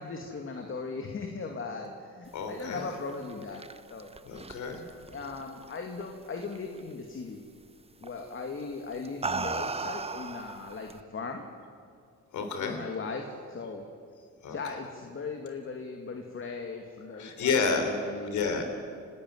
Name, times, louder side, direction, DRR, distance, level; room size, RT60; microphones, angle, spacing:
voice 1, 0.0-3.6 3.9-4.1 5.1-7.4 8.0-11.4 12.6-13.8 14.5-18.5, left 4 dB, 45° left, 3 dB, 2.3 m, -38 dB
voice 2, 2.3-2.8 4.2-4.8 12.3-12.8 14.4-14.6 17.1-18.0 18.2-18.6, left 5 dB, 75° left, 5 dB, 3.7 m, -30 dB
sound 1, 3.1-6.0 6.4-6.8 8.0-8.3 8.9-11.0, right 4 dB, 20° right, 1.0 m, -36 dB
29.5 x 12.5 x 9.4 m, 2.2 s
cardioid pair, 90°, 30 cm